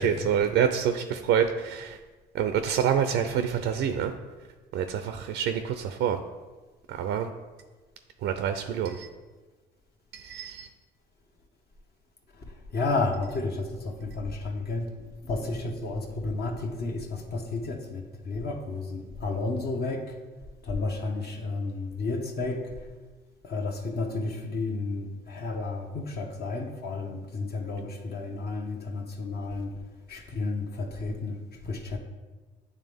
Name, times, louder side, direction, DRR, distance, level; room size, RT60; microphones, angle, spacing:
voice 1, 0.0-2.0 2.3-4.1 4.7-6.2 6.9-7.3 8.2-9.1 10.1-10.7, right 8 dB, 75° right, 8 dB, 0.4 m, -27 dB
voice 2, 12.4-14.9 15.2-20.2 20.6-22.8 23.4-29.7 30.1-31.4 31.6-32.0, left 3 dB, 55° left, 2 dB, 0.9 m, -32 dB
8.6 x 3.3 x 3.4 m, 1.3 s
supercardioid pair, 70°, 20 cm